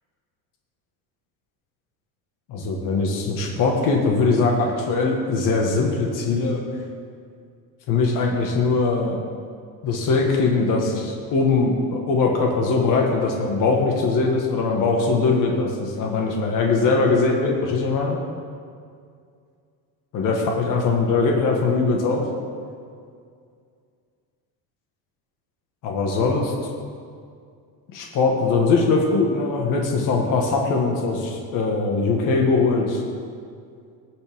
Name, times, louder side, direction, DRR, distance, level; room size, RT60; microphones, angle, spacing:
voice 1, 2.5-6.6 7.9-9.2 9.8-18.2 20.1-22.2 25.8-26.5 27.9-33.0, left 3 dB, 50° left, 0 dB, 1.7 m, -21 dB
18.5 x 7.9 x 3.7 m, 2.2 s
cardioid pair, 175°, 41 cm